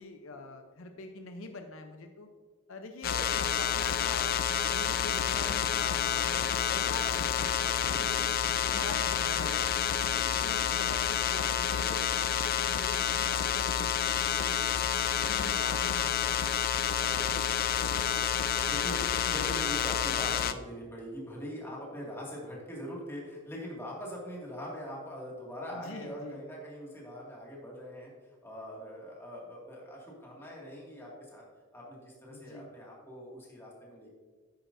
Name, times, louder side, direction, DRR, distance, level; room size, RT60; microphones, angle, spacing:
voice 1, 0.0-2.3 2.7-4.4 4.7-8.3 8.7-9.7 10.1-14.9 15.3-16.9 19.2-19.3 25.7-26.4 32.3-32.7, left 2 dB, 70° left, 6 dB, 0.7 m, -45 dB
sound 1, 3.0-20.5, left 9 dB, 45° left, 0.4 m, -29 dB
sound 2, 4.5-10.4, equal, 25° right, 2.0 m, -52 dB
voice 2, 17.0-31.4 31.7-34.1, equal, 10° left, -4 dB, 2.1 m, -43 dB
10.5 x 9.0 x 2.7 m, 1.5 s
head